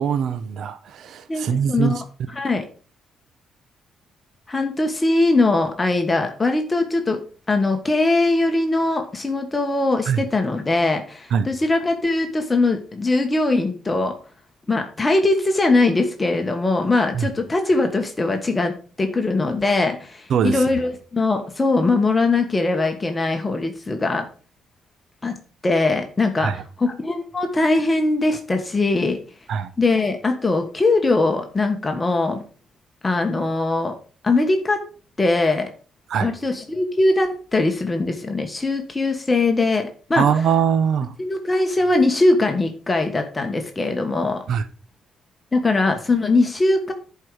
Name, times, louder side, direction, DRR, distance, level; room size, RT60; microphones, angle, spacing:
voice 1, 0.0-2.0 10.1-10.2 11.3-11.5 17.1-17.3 20.3-20.6 26.4-26.6 29.5-29.7 36.1-36.3 40.2-41.1 44.5-44.6, right 7 dB, 70° right, 0.8 m, -22 dB
voice 2, 1.3-2.0 2.3-2.6 4.5-7.2 7.5-14.1 14.7-24.2 25.2-25.3 25.6-26.5 26.8-29.2 29.8-32.4 33.0-33.9 34.2-34.8 35.2-35.7 36.2-40.2 41.2-44.4 45.5-46.9, left 2 dB, 20° left, 1.4 m, -21 dB
10.5 x 4.8 x 5.0 m
cardioid pair, 90°, 0 cm